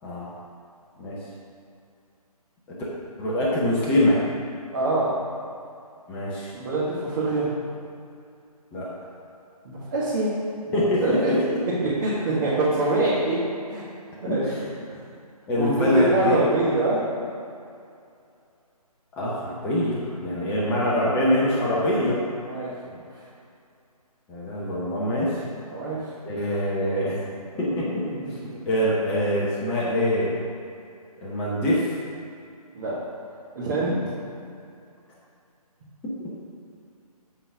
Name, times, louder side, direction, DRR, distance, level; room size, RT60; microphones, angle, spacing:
voice 1, 0.0-0.3 1.0-1.2 2.7-2.8 3.2-4.2 6.1-6.5 8.7-8.9 10.7-11.4 14.3-14.5 15.5-16.4 19.2-22.2 24.3-25.4 26.2-27.2 27.6-28.0 28.3-28.4 28.7-30.3 31.2-31.9, left 1 dB, 5° left, -6 dB, 0.6 m, -24 dB
voice 2, 4.7-5.2 6.5-7.5 9.6-10.3 10.7-11.3 11.8-13.4 13.7-13.8 14.2-14.4 15.5-17.0 22.4-23.0 25.7-26.0 27.7-27.8 28.0-28.1 32.7-32.9 33.5-33.9, right 2 dB, 30° right, -10 dB, 1.6 m, -24 dB
8.2 x 3.9 x 5.8 m, 2.5 s
figure-of-eight pair, 150°, 20 cm